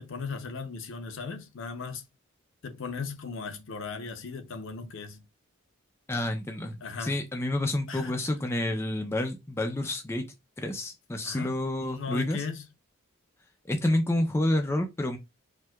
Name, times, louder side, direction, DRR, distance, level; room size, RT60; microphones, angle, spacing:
voice 1, 0.0-2.0 2.6-5.2 6.8-7.2 7.9-8.1 11.2-12.7, left 5 dB, 60° left, 0.6 m, -37 dB
voice 2, 6.1-10.3 10.6-12.4 13.6-15.2, left 1 dB, 10° left, 0.3 m, -29 dB
4.4 x 2.2 x 2.2 m
head